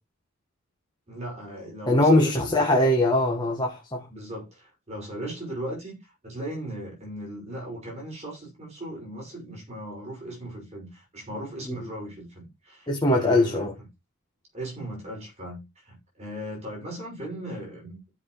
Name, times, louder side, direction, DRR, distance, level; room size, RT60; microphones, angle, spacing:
voice 1, 1.1-2.7 4.1-13.9 14.5-18.0, right 1 dB, 30° right, 5.9 m, -38 dB
voice 2, 1.9-4.1 11.7-11.8 12.9-13.7, left 1 dB, 20° left, 1.5 m, -21 dB
15.0 x 6.0 x 3.1 m
head